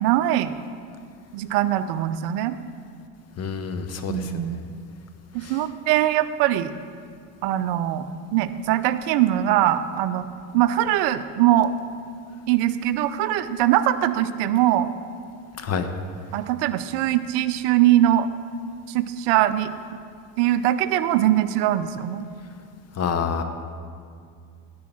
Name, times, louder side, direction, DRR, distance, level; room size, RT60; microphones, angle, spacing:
voice 1, 0.0-0.5 1.3-2.6 4.1-4.6 5.3-6.7 7.4-8.1 8.3-10.3 10.5-11.7 12.5-14.9 16.3-18.3 18.9-19.7 20.4-22.3, right 13 dB, 55° right, 11 dB, 0.6 m, -21 dB
voice 2, 3.4-4.4 5.4-5.6 15.6-15.9 23.0-23.4, left 6 dB, 30° left, 8 dB, 0.9 m, -27 dB
10.5 x 4.8 x 7.4 m, 2.2 s
hypercardioid pair, 85°, 48 cm